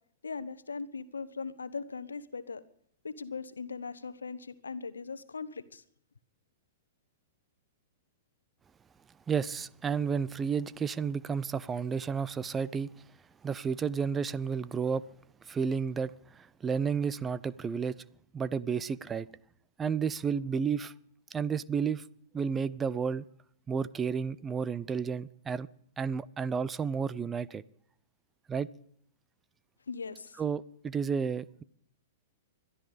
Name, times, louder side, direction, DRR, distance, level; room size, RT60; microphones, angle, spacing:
voice 1, 0.2-2.6 3.0-5.8 29.9-30.4, left 4 dB, 80° left, 1.0 m, -39 dB
voice 2, 9.3-13.0 13.4-15.0 15.5-18.0 18.3-19.3 19.8-20.9 21.3-22.0 22.3-23.2 23.7-25.7 26.0-27.6 28.5-28.7 30.4-31.6, right 6 dB, 20° right, 0.6 m, -31 dB
21.5 x 12.5 x 5.1 m
figure-of-eight pair, 105°, 0 cm